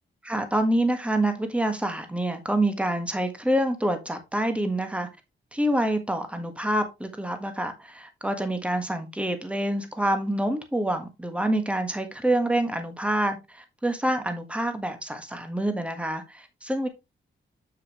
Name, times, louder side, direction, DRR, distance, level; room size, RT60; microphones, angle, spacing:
voice 1, 0.2-5.1 5.5-16.9, right 1 dB, 5° right, 1.5 m, -27 dB
7.5 x 6.7 x 3.0 m
wide cardioid pair, 100°, 20 cm